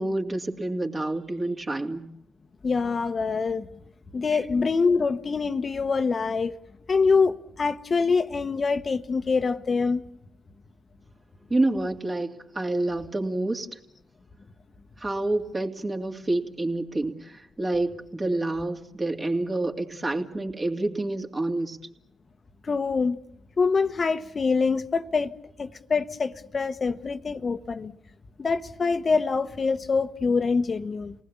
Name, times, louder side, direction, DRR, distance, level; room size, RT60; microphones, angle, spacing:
voice 1, 0.0-2.0 4.3-4.4 11.5-13.8 15.0-21.8, right 2 dB, 35° right, 2.7 m, -28 dB
voice 2, 2.6-3.6 4.1-6.6 6.9-10.0 22.6-23.2 23.6-25.3 25.6-27.9 28.4-31.1, left 4 dB, 45° left, 1.1 m, -25 dB
29.0 x 19.5 x 7.2 m
hypercardioid pair, 40°, 0 cm